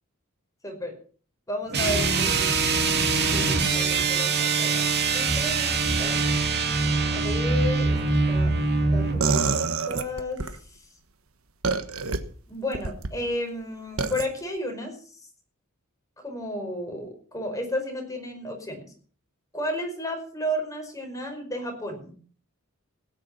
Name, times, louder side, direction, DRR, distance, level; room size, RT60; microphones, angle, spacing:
voice 1, 0.6-0.9 1.5-2.6 3.3-6.2 7.1-8.0 8.3-8.5 8.8-10.4 12.5-15.0 16.2-18.9 19.5-22.1, left 1 dB, 15° left, 3 dB, 5.1 m, -33 dB
sound 1, 1.7-9.2, right 4 dB, 50° right, 2.5 m, -23 dB
sound 2, 9.2-10.5 11.6-12.2 12.7-13.1 14.0-14.2, right 4 dB, 75° right, 1.4 m, -25 dB
17.0 x 9.7 x 5.7 m, 0.43 s
head